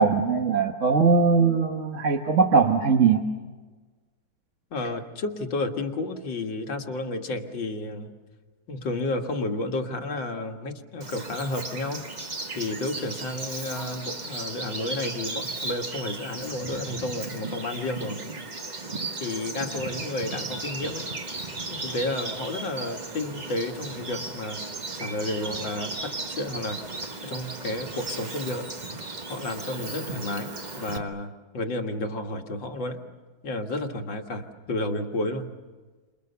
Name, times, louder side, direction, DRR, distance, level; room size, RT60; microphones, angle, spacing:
voice 1, 0.0-3.2, right 5 dB, 45° right, 3 dB, 1.5 m, -20 dB
voice 2, 4.7-8.1 8.7-12.0 12.5-18.2 19.2-21.0 21.7-24.6 24.9-26.8 27.2-28.7 29.3-33.0 33.4-35.5, left 2 dB, 80° left, 3 dB, 2.5 m, -31 dB
Bird vocalization bird call bird song, 11.0-31.0, right 3 dB, 25° right, 1.3 m, -36 dB
30.0 x 27.5 x 6.9 m, 1.4 s
omnidirectional pair, 2.0 m